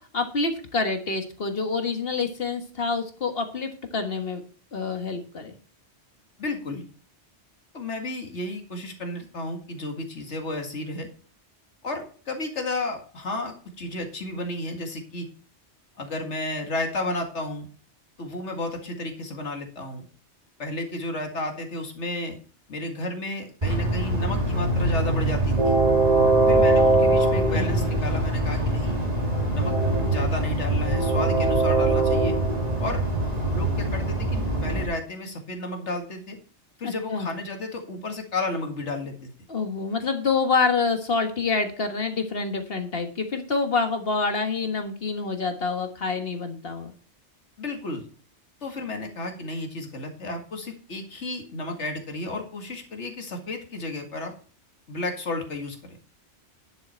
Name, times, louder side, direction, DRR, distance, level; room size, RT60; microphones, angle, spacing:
voice 1, 0.1-4.4 4.7-5.5 27.5-27.9 36.8-37.3 39.5-46.9, left 4 dB, 60° left, 6 dB, 1.6 m, -27 dB
voice 2, 6.4-6.8 7.7-11.1 11.8-15.3 16.0-17.7 18.2-20.1 20.6-22.4 22.7-25.8 26.5-28.9 29.5-29.7 30.1-32.4 32.8-33.0 33.5-36.4 36.8-39.3 47.6-48.1 48.6-54.3 54.9-56.0, left 2 dB, 85° left, 4 dB, 2.3 m, -32 dB
Train, 23.6-34.8, right 2 dB, 35° right, 2.4 m, -22 dB
10.5 x 7.5 x 4.4 m, 0.42 s
omnidirectional pair, 1.2 m